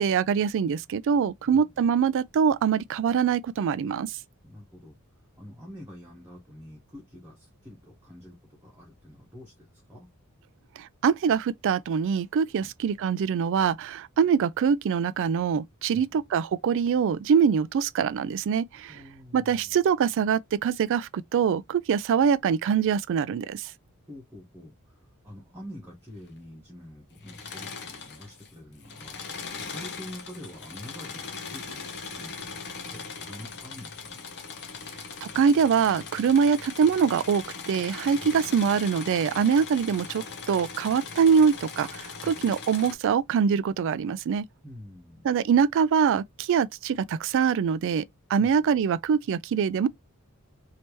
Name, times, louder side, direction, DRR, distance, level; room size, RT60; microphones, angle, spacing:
voice 1, 0.0-4.1 10.8-19.0 19.3-23.7 35.2-44.4 45.2-48.0 48.3-49.9, right 7 dB, 55° right, 0.3 m, -24 dB
voice 2, 1.4-1.8 4.4-4.9 5.4-10.1 12.6-12.7 15.9-16.2 18.9-19.7 24.1-34.2 38.2-38.5 42.2-42.5 44.6-45.3 48.4-48.6, left 1 dB, 10° right, 1.1 m, -46 dB
Engine / Mechanisms, 27.2-28.5 28.8-42.9, left 5 dB, 50° left, 0.9 m, -40 dB
3.3 x 2.8 x 2.9 m
head